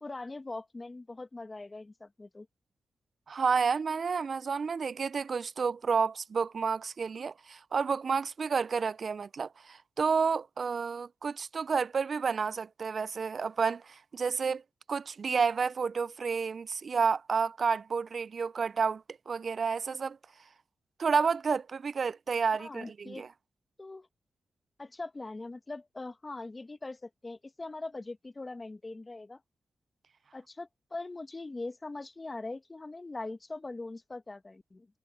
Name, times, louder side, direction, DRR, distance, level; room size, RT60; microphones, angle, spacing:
voice 1, 0.0-2.5 22.6-23.3 23.8-24.1 24.8-29.4 30.3-34.9, left 2 dB, 35° left, 1.7 m, -41 dB
voice 2, 3.3-14.6 14.9-20.2 21.0-23.3, right 5 dB, 60° right, 0.4 m, -30 dB
supercardioid pair, 45°, 0 cm